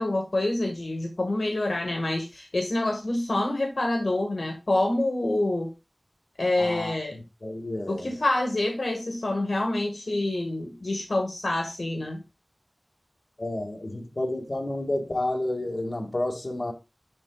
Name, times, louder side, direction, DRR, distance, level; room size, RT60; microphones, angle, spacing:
voice 1, 0.0-5.7 6.4-7.2 7.9-12.2, left 2 dB, 75° left, 1.7 m, -27 dB
voice 2, 6.6-8.1 13.4-16.7, left 1 dB, 55° left, 1.9 m, -30 dB
11.0 x 4.0 x 2.3 m
wide cardioid pair, 55°, 0 cm